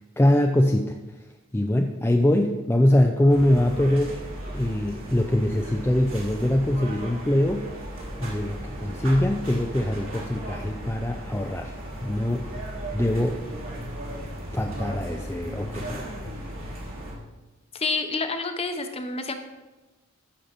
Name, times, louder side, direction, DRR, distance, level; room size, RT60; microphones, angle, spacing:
voice 1, 0.2-1.0 1.5-4.2 4.5-7.7 8.2-11.7 12.0-12.5 12.9-13.4 14.5-16.0, left 1 dB, 10° left, 2 dB, 0.5 m, -23 dB
sound 1, 3.3-17.1, right 1 dB, 70° right, 3.6 m, -36 dB
voice 2, 17.7-19.3, left 3 dB, 30° left, 7 dB, 0.9 m, -28 dB
14.5 x 5.7 x 5.2 m, 1.2 s
head